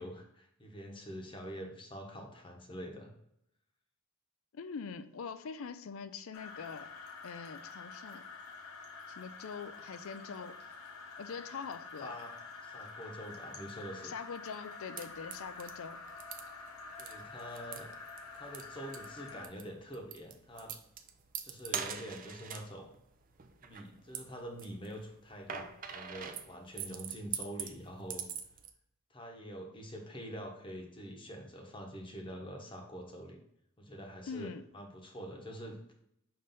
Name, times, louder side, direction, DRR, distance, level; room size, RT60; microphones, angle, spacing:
voice 1, 0.0-3.1 12.0-12.3 12.6-14.1 17.0-17.9 18.3-20.7 21.4-22.9 23.6-28.2 29.1-33.4 33.8-35.9, equal, 25° left, 1.0 m, -45 dB
voice 2, 4.5-6.9 7.2-8.2 9.1-10.6 11.2-12.2 14.0-16.0 34.3-34.7, left 5 dB, 70° left, 0.4 m, -43 dB
sound 1, 6.3-19.5, left 4 dB, 85° left, 1.0 m, -48 dB
sound 2, 15.0-28.7, right 8 dB, 40° right, 0.5 m, -44 dB
5.7 x 3.3 x 5.3 m
head